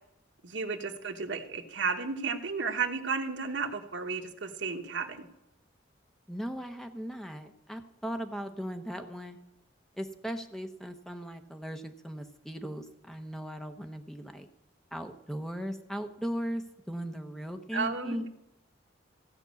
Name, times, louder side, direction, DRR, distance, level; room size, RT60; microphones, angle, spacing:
voice 1, 0.4-5.3 17.7-18.3, right 5 dB, 80° right, 5 dB, 1.2 m, -33 dB
voice 2, 6.3-9.4 10.0-14.5 14.9-18.2, equal, ahead, 6 dB, 0.9 m, -38 dB
15.5 x 5.3 x 8.3 m, 0.88 s
head